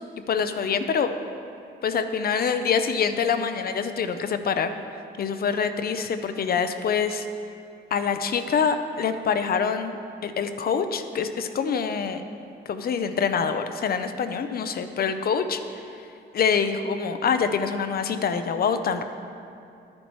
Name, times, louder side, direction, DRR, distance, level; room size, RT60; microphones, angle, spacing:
voice 1, 0.3-1.1 1.8-4.7 5.2-7.3 7.9-10.0 10.2-12.2 12.7-15.6 16.3-19.0, left 6 dB, 50° left, 9 dB, 0.6 m, -25 dB
10.5 x 9.5 x 3.1 m, 2.6 s
cardioid pair, 90°, 20 cm